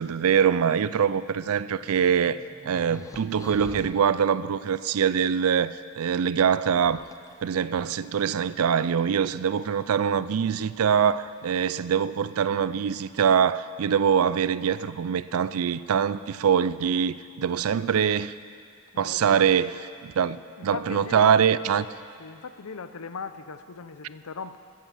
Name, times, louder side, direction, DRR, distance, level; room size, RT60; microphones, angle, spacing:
voice 1, 0.0-7.0 7.4-18.3 19.0-21.9, right 7 dB, 85° right, 0.4 m, -24 dB
sound 1, 0.9-4.1 5.4-5.5 6.5-8.4 9.5-9.9 10.9-11.0 11.4-11.7, left 1 dB, 15° left, 0.5 m, -47 dB
voice 2, 18.9-19.6 20.6-21.3 22.2-24.6, left 5 dB, 80° left, 0.6 m, -39 dB
14.5 x 8.6 x 7.5 m
head